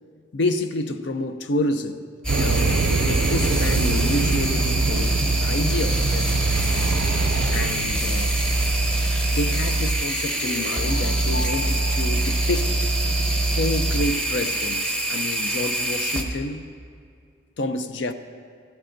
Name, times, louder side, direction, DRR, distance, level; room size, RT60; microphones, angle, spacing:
voice 1, 0.3-2.0 2.3-6.6 7.5-8.4 9.3-12.9 13.5-16.6 17.6-18.1, left 2 dB, 65° left, 9 dB, 0.5 m, -28 dB
sound 1, 2.2-16.2, right 2 dB, 5° left, 0.8 m, -23 dB
sound 2, 2.3-9.0, right 4 dB, 75° right, 0.4 m, -26 dB
sound 3, 10.2-13.3, left 2 dB, 90° left, 1.3 m, -37 dB
15.5 x 14.0 x 2.6 m, 2.3 s
head